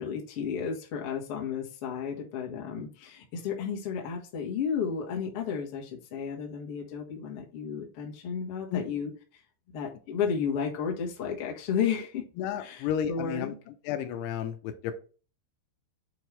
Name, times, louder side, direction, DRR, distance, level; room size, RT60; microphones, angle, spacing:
voice 1, 0.0-9.1 9.7-12.2 12.6-13.5, left 7 dB, 60° left, 0 dB, 1.4 m, -33 dB
voice 2, 12.4-13.6 13.8-15.0, left 9 dB, 80° left, 8 dB, 2.7 m, -32 dB
7.8 x 4.6 x 3.4 m, 0.36 s
omnidirectional pair, 4.9 m